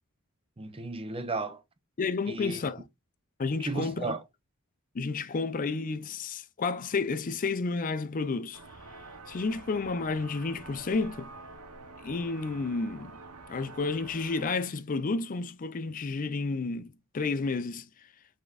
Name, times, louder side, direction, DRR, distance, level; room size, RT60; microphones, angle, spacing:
voice 1, 0.6-1.6 2.3-2.6 3.6-4.2, right 3 dB, 25° right, 0.6 m, -34 dB
voice 2, 2.0-2.8 3.4-4.2 4.9-8.6 9.3-11.3 12.0-13.2 13.5-17.9, left 4 dB, 35° left, 0.4 m, -31 dB
sound 1, 8.5-14.5, right 3 dB, 80° right, 0.9 m, -48 dB
5.1 x 3.7 x 2.4 m
head